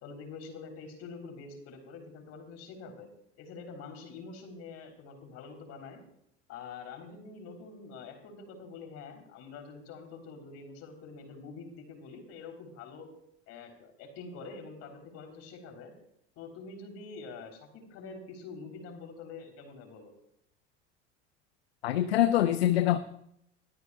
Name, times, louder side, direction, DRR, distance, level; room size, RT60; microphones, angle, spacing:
voice 1, 0.0-3.1 3.4-6.0 6.5-13.1 13.5-15.9 16.4-20.1, left 4 dB, 50° left, 3 dB, 3.5 m, -46 dB
voice 2, 21.8-23.0, left 12 dB, 65° left, 12 dB, 0.7 m, -24 dB
22.0 x 13.5 x 2.3 m, 0.74 s
figure-of-eight pair, 65°, 33 cm